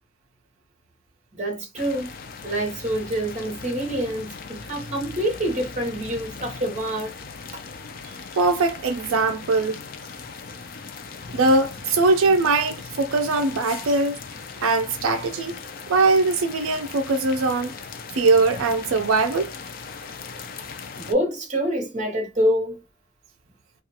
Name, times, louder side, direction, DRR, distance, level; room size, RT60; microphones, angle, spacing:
voice 1, 1.3-2.1 2.4-7.2 7.5-7.6 20.9-22.8, equal, 35° right, 0.9 m, -26 dB
sound 1, 1.7-21.1, left 5 dB, 45° left, 0.4 m, -39 dB
voice 2, 8.3-9.8 11.3-14.2 14.6-15.5 15.9-17.7 18.1-19.5, right 3 dB, 80° right, 0.4 m, -21 dB
2.4 x 2.3 x 2.7 m
head